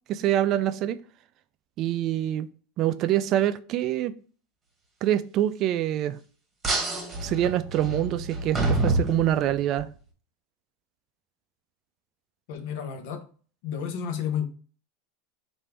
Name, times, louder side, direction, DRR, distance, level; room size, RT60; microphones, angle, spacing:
voice 1, 0.1-1.0 1.8-2.5 2.8-4.1 5.0-6.2 7.2-9.9, right 12 dB, 45° right, 0.3 m, -25 dB
sound 1, 6.6-9.8, right 2 dB, 20° right, 1.2 m, -28 dB
voice 2, 12.5-13.3 13.6-14.4, left 8 dB, 65° left, 0.8 m, -31 dB
3.3 x 2.6 x 4.3 m
hypercardioid pair, 105°, 0 cm